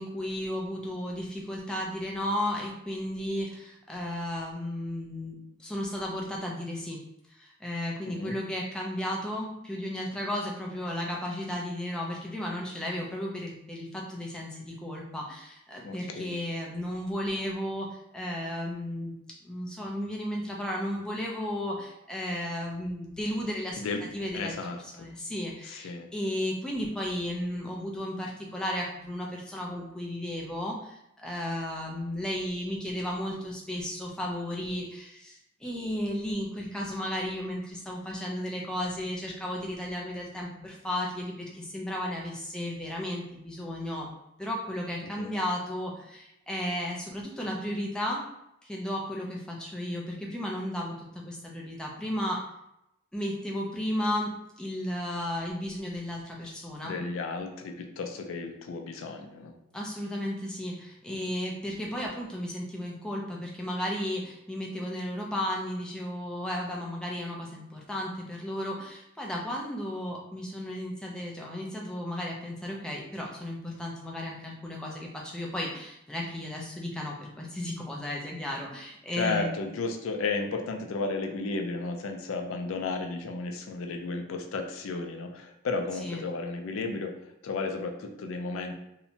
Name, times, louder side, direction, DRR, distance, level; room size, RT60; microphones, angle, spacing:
voice 1, 0.0-7.0 7.3-19.1 19.4-24.6 25.0-44.1 44.4-48.3 48.6-52.4 53.1-57.0 59.7-79.6 86.0-86.2, left 1 dB, 5° left, -2 dB, 0.3 m, -34 dB
voice 2, 15.8-16.4 23.8-24.0 24.3-25.1 25.6-26.1 45.2-45.3 56.8-59.5 61.1-61.3 79.1-88.7, left 3 dB, 80° left, 4 dB, 0.4 m, -33 dB
2.7 x 2.1 x 2.6 m, 0.82 s
head